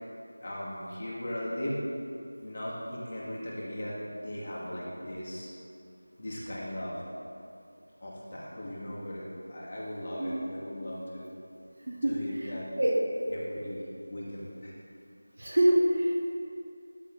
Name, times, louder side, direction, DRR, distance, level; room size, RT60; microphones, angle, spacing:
voice 1, 0.4-1.8 2.4-5.5 6.2-7.0 8.0-11.3 12.0-12.7 13.3-13.8 14.1-14.7, equal, 40° left, -6 dB, 2.2 m, -38 dB
voice 2, 10.2-10.5 12.0-12.1 12.4-12.5 12.8-12.9 15.4-16.3, right 1 dB, 65° right, -4 dB, 2.3 m, -25 dB
13.5 x 10.0 x 2.8 m, 2.6 s
figure-of-eight pair, 170°, 0 cm